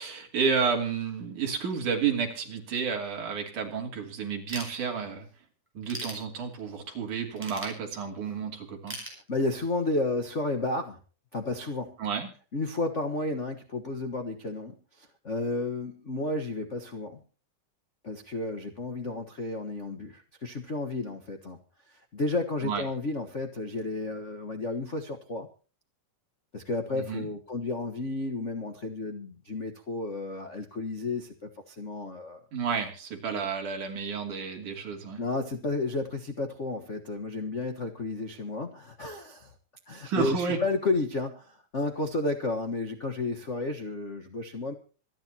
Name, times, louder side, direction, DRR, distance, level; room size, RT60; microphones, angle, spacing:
voice 1, 0.0-5.3 5.7-9.0 12.0-12.3 22.6-22.8 26.9-27.3 32.5-35.2 40.0-40.6, right 6 dB, 65° right, 2 dB, 4.4 m, -31 dB
Ratchet pawl / Tools, 4.5-5.3 5.7-6.8 7.4-8.3 8.9-9.9, equal, 5° right, 6.5 m, -40 dB
voice 2, 9.3-11.0 11.3-12.0 12.5-17.2 18.0-21.6 21.9-25.5 26.5-32.4 33.3-33.5 35.2-39.5 39.9-44.7, left 2 dB, 90° left, 6 dB, 0.6 m, -32 dB
26.0 x 10.5 x 2.9 m, 0.37 s
omnidirectional pair, 3.8 m